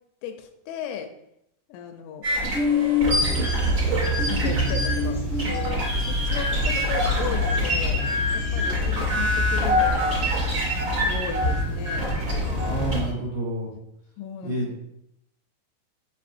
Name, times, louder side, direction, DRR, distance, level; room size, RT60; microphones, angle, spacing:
voice 1, 0.2-1.1 1.7-2.2 3.3-3.6 4.2-8.0 8.3-10.3 11.1-12.1 14.2-14.8, left 7 dB, 85° left, 6 dB, 3.0 m, -36 dB
sound 1, 2.2-13.0, left 1 dB, 35° right, 1.9 m, -25 dB
sound 2, 3.0-13.1, equal, 90° right, 1.2 m, -28 dB
voice 2, 12.6-13.7 14.4-14.8, right 1 dB, 65° right, -4 dB, 2.4 m, -29 dB
7.4 x 5.4 x 2.6 m, 0.80 s
omnidirectional pair, 5.6 m